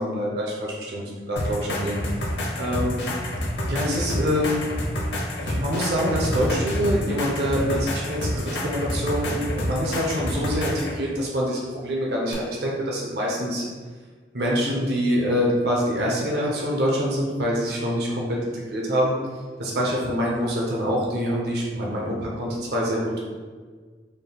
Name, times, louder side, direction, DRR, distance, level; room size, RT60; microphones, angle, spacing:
voice 1, 0.0-1.9 2.5-3.0 3.7-4.6 5.4-13.7 14.3-19.1 19.6-23.2, equal, 70° right, -3 dB, 0.7 m, -25 dB
sound 1, 1.4-11.0 12.3-12.4, left 1 dB, 90° left, 0.7 m, -28 dB
4.3 x 3.4 x 2.3 m, 1.5 s
head